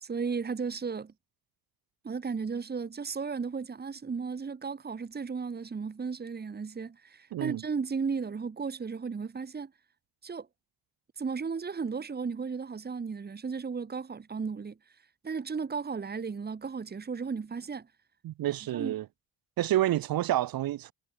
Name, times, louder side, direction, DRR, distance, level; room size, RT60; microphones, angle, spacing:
voice 1, 0.0-1.1 2.0-9.7 10.2-10.5 11.2-14.8 15.2-17.9 18.7-18.9, right 5 dB, 25° right, 2.5 m, -35 dB
voice 2, 7.3-7.6 18.2-19.1 19.6-20.9, right 13 dB, 70° right, 3.6 m, -29 dB
cardioid pair, 110°, 36 cm